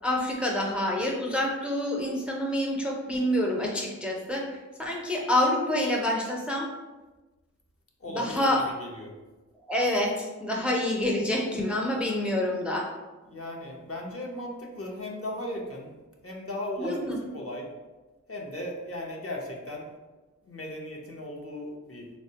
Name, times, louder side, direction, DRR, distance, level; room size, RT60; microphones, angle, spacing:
voice 1, 0.0-6.7 8.1-8.6 9.7-12.9 16.8-17.2, left 1 dB, 5° right, -1 dB, 0.4 m, -27 dB
voice 2, 8.0-8.4 8.8-9.1 13.3-15.9 16.2-17.7 18.3-19.9 20.5-22.1, left 1 dB, 45° left, -1 dB, 0.6 m, -37 dB
3.6 x 2.1 x 2.7 m, 1.2 s
wide cardioid pair, 50°, 31 cm